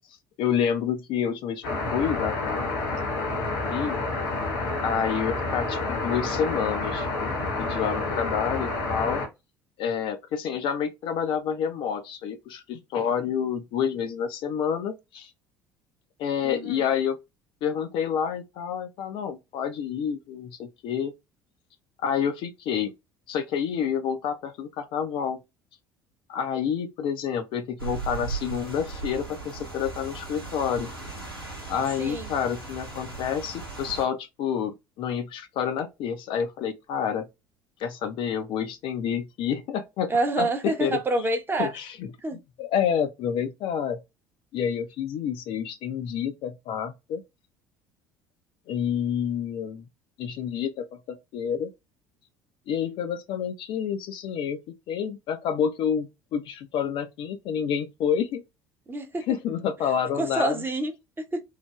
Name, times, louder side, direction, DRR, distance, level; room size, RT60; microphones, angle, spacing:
voice 1, 0.4-3.1 3.7-4.0 4.8-7.3 7.6-9.2 9.8-15.3 16.2-17.2 17.6-21.1 22.0-22.9 23.3-25.4 26.3-30.9 31.7-37.3 37.8-41.0 41.6-42.1 42.6-44.0 44.5-47.2 48.7-49.8 50.2-51.7 52.7-58.4 59.3-60.6, left 8 dB, 45° left, 0.4 m, -29 dB
sound 1, 1.6-9.3, left 2 dB, 70° left, 0.9 m, -29 dB
voice 2, 16.4-16.9 32.0-32.3 40.1-41.7 42.2-42.4 58.9-59.3 60.1-61.4, right 2 dB, 20° right, 0.7 m, -27 dB
Rain, 27.8-34.0, right 4 dB, 90° right, 0.8 m, -37 dB
3.1 x 2.0 x 2.2 m
figure-of-eight pair, 60°, 12 cm